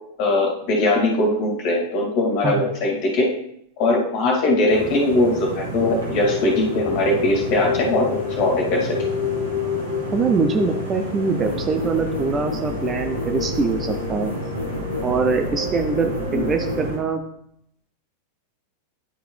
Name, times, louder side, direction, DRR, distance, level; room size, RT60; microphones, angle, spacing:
voice 1, 0.2-3.3 3.8-8.9 16.3-16.4, left 2 dB, 45° left, -1 dB, 2.1 m, -20 dB
sound 1, 4.6-16.9, left 5 dB, 60° right, 1.8 m, -31 dB
sound 2, 4.7-17.0, right 2 dB, 80° right, 2.3 m, -32 dB
voice 2, 10.1-14.3 15.0-17.2, right 4 dB, 20° right, 5 dB, 0.6 m, -23 dB
sound 3, 11.4-16.9, left 2 dB, 80° left, 1.0 m, -32 dB
9.9 x 4.7 x 3.2 m, 0.71 s
figure-of-eight pair, 90°, 0 cm